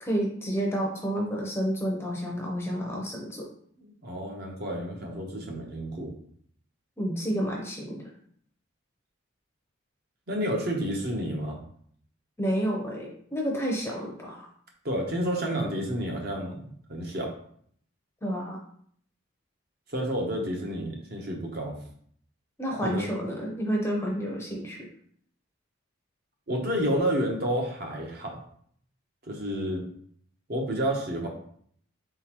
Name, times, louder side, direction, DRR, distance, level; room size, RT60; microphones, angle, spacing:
voice 1, 0.0-3.5 7.0-8.1 12.4-14.5 18.2-18.6 22.6-24.9, equal, 10° left, -2 dB, 0.6 m, -30 dB
voice 2, 3.8-6.1 10.3-11.6 14.8-17.3 19.9-21.8 22.8-23.0 26.5-28.3 29.3-29.8 30.5-31.3, equal, 50° right, 0 dB, 0.9 m, -30 dB
4.0 x 3.8 x 3.0 m, 0.62 s
head